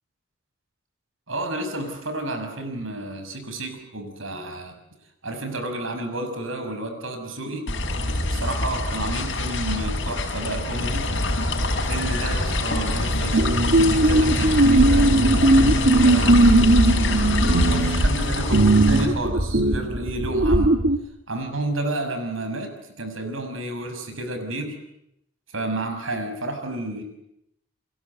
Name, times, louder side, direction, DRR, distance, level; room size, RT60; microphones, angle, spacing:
voice 1, 1.3-4.7 5.2-7.7 8.3-11.1 11.7-13.5 13.9-16.5 17.6-20.8 21.3-24.7 25.5-27.0, right 1 dB, 80° right, 7 dB, 6.1 m, -31 dB
sound 1, 7.7-19.1, left 1 dB, 60° left, 5.4 m, -24 dB
sound 2, 13.3-21.0, right 2 dB, 60° right, 1.7 m, -18 dB
30.0 x 23.0 x 8.3 m, 0.82 s
head